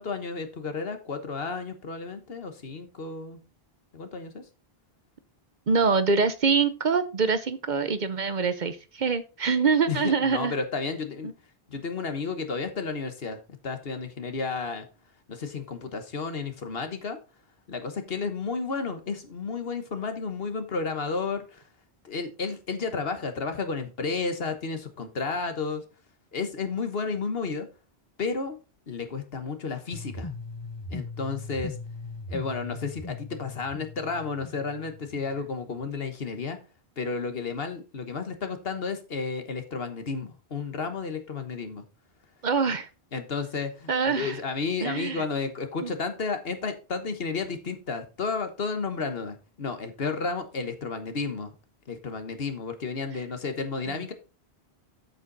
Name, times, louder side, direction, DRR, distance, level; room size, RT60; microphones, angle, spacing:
voice 1, 0.0-3.4 3.9-4.4 9.9-11.3 11.7-14.9 15.3-17.2 17.7-21.6 22.0-25.8 26.3-27.7 28.2-28.6 28.9-30.3 30.9-31.7 32.3-36.6 37.0-41.8 43.1-51.6 51.9-54.1, left 4 dB, 70° left, 8 dB, 1.5 m, -32 dB
voice 2, 5.7-10.5 11.2-11.3 42.4-42.9 43.9-44.4 44.8-45.2 45.8-45.9 53.9-54.0, right 5 dB, 50° right, 12 dB, 0.8 m, -25 dB
sound 1, 29.9-35.9, left 3 dB, 25° left, 1.0 m, -40 dB
8.2 x 7.4 x 4.0 m, 0.32 s
omnidirectional pair, 1.0 m